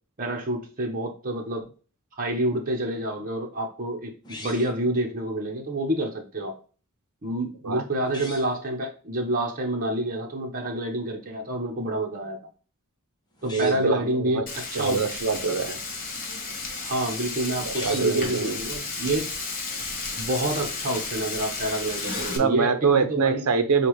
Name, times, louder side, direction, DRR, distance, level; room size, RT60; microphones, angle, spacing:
voice 1, 0.2-1.7 2.2-6.6 7.2-12.4 13.4-15.2 16.8-19.3 20.2-23.4, right 1 dB, 40° right, 0 dB, 1.0 m, -28 dB
sound 1, 4.2-4.9 8.0-8.6 13.3-14.0 17.6-18.3 21.8-22.5, left 2 dB, 20° left, 0.9 m, -41 dB
voice 2, 13.4-14.4 14.7-15.8 17.6-18.6 22.2-23.9, right 5 dB, 90° right, 8 dB, 0.8 m, -24 dB
Frying (food), 14.5-22.4, left 3 dB, 40° left, 1.4 m, -33 dB
6.6 x 2.4 x 3.1 m, 0.38 s
head